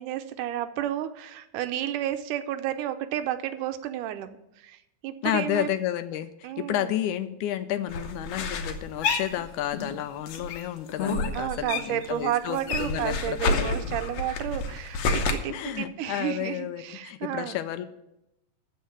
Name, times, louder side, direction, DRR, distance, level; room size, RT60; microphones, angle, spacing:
voice 1, 0.0-5.7 6.4-6.9 11.3-17.6, right 12 dB, 80° right, 9 dB, 2.2 m, -31 dB
voice 2, 5.2-13.7 15.5-17.9, left 12 dB, 80° left, 11 dB, 1.9 m, -31 dB
sound 1, 7.9-10.0 10.3-12.1 12.4-15.3, left 4 dB, 65° left, 1.9 m, -29 dB
13.0 x 4.4 x 8.6 m, 0.86 s
omnidirectional pair, 3.7 m